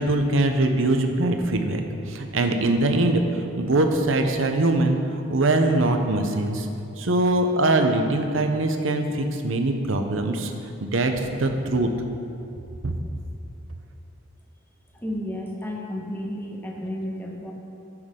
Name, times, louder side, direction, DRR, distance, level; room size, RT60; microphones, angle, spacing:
voice 1, 0.0-3.2 3.6-5.0 5.3-6.7 7.0-10.5 10.8-11.9 12.8-12.9, right 2 dB, 75° right, 5 dB, 0.8 m, -22 dB
voice 2, 14.9-17.5, left 1 dB, 10° left, -2 dB, 1.2 m, -32 dB
14.5 x 6.2 x 3.8 m, 2.7 s
head